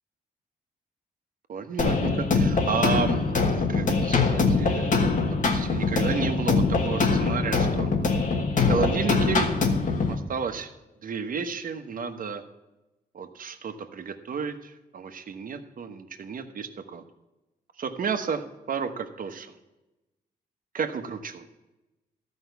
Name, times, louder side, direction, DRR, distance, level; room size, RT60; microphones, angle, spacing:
voice 1, 1.5-7.9 8.7-9.5 10.1-10.7 11.0-12.4 13.1-17.0 17.8-19.6 20.7-21.5, right 5 dB, 60° right, 8 dB, 1.2 m, -32 dB
sound 1, 1.8-10.1, left 4 dB, 50° left, 1.4 m, -23 dB
13.0 x 5.4 x 8.0 m, 1.0 s
cardioid pair, 100°, 16 cm